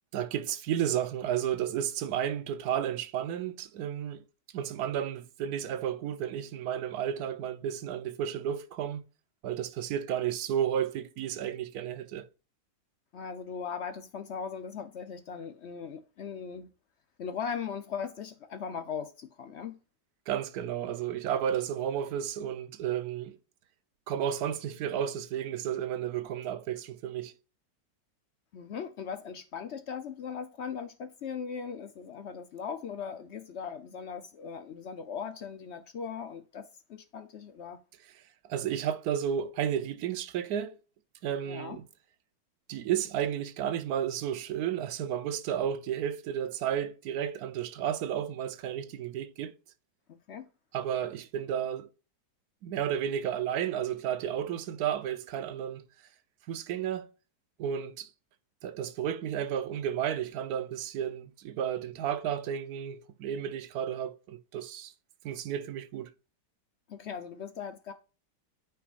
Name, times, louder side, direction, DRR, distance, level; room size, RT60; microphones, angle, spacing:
voice 1, 0.1-4.2 4.5-9.0 9.4-12.3 20.3-23.4 24.1-27.3 38.5-40.8 41.2-41.8 42.7-49.5 50.7-51.9 52.6-55.9 56.5-57.1 57.6-58.1 58.6-64.9 65.2-66.1, right 9 dB, 65° right, 1.1 m, -32 dB
voice 2, 13.1-16.7 17.2-19.8 28.5-37.8 41.5-41.8 50.3-50.5 66.9-67.9, left 6 dB, 60° left, 0.7 m, -39 dB
9.1 x 4.7 x 2.5 m
omnidirectional pair, 1.9 m